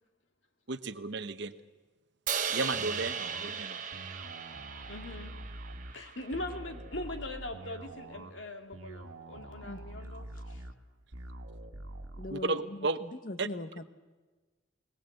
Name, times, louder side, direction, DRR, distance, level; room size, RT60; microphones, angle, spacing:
voice 1, 0.7-1.5 2.5-3.8 12.3-13.0 13.4-13.5, right 3 dB, 60° right, 11 dB, 0.9 m, -33 dB
Crash cymbal, 2.3-6.5, right 7 dB, 40° right, 1.2 m, -37 dB
sound 1, 2.7-12.3, right 1 dB, 85° right, 1.6 m, -45 dB
voice 2, 4.9-5.3 5.9-10.6, left 1 dB, 65° left, 4 dB, 2.4 m, -41 dB
voice 3, 12.2-13.8, left 2 dB, 45° left, 10 dB, 0.9 m, -41 dB
21.0 x 20.0 x 7.9 m, 1.3 s
head